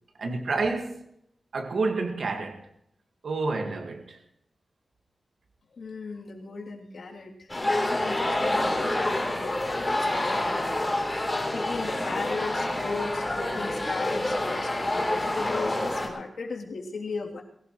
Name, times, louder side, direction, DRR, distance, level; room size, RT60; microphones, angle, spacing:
voice 1, 0.2-1.1 1.5-2.7 3.2-4.2, right 3 dB, 65° right, 1.9 m, -29 dB
voice 2, 5.7-17.4, left 4 dB, 75° left, 3.2 m, -36 dB
sound 1, 7.5-16.1, left 1 dB, 15° left, 3.7 m, -27 dB
22.5 x 16.5 x 3.2 m
wide cardioid pair, 165°, 0 cm